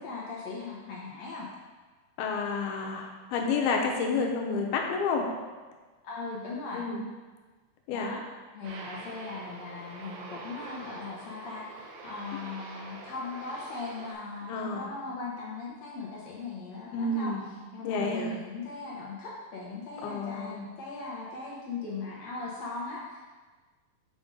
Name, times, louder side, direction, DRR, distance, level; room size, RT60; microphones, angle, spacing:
voice 1, 0.0-1.5 6.0-6.9 7.9-8.2 8.5-17.4 17.7-23.2, left 3 dB, 70° left, -5 dB, 1.6 m, -39 dB
voice 2, 2.2-5.3 6.7-7.0 7.9-8.1 12.3-12.4 14.5-14.9 16.9-17.5 17.8-18.4 20.0-20.7, left 4 dB, 85° left, 1 dB, 2.8 m, -30 dB
Aircraft, 8.6-14.1, right 3 dB, 85° right, 1.5 m, -45 dB
7.7 x 5.2 x 3.8 m, 1.3 s
omnidirectional pair, 4.3 m